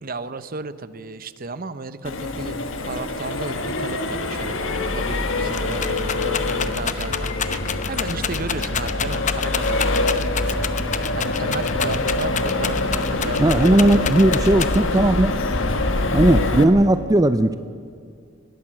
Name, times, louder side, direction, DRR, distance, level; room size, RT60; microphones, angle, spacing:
voice 1, 0.0-2.6 2.9-14.1, right 3 dB, 50° right, 14 dB, 0.9 m, -34 dB
Accelerating revving vroom, 2.0-16.6, left 2 dB, 80° left, 1.6 m, -24 dB
sound 1, 2.4-9.2, right 1 dB, 90° right, 2.2 m, -44 dB
Rattle, 5.1-15.1 15.7-16.3, left 7 dB, 40° left, 0.9 m, -29 dB
voice 2, 13.4-15.3 16.1-17.6, right 1 dB, 20° right, 11 dB, 0.5 m, -17 dB
21.0 x 16.5 x 7.6 m, 2.3 s
head